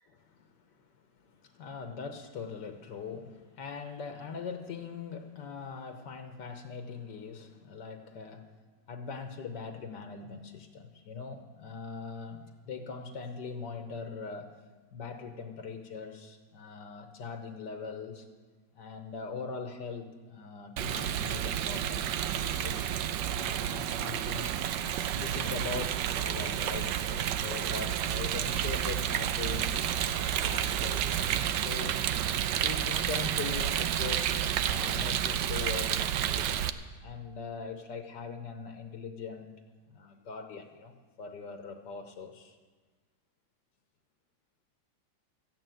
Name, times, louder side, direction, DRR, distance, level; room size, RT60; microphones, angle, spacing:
voice 1, 0.1-0.8 1.2-8.5 8.9-14.5 14.9-18.3 18.7-24.5 25.1-32.0 32.5-34.3 34.6-36.6 37.0-39.5 39.9-40.9 41.2-42.6, left 5 dB, 75° left, 6 dB, 1.7 m, -41 dB
Rain, 20.8-36.7, right 10 dB, 75° right, 1.3 m, -30 dB
14.0 x 9.2 x 9.1 m, 1.4 s
omnidirectional pair, 1.9 m